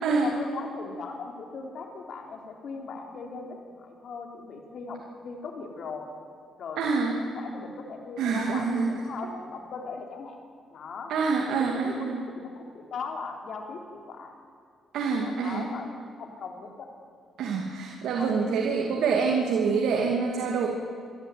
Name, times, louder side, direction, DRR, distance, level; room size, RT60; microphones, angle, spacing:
voice 1, 0.2-6.1 6.6-6.8 7.3-10.4 10.7-11.1 11.6-14.3 15.2-15.9 16.2-16.9 18.1-18.6, left 4 dB, 60° left, 3 dB, 3.7 m, -39 dB
voice 2, 6.8-7.1 8.2-8.9 11.1-12.2 14.9-15.7 17.4-20.7, right 5 dB, 80° right, 0 dB, 2.5 m, -26 dB
27.5 x 11.5 x 9.3 m, 2.2 s
cardioid pair, 90°, 0 cm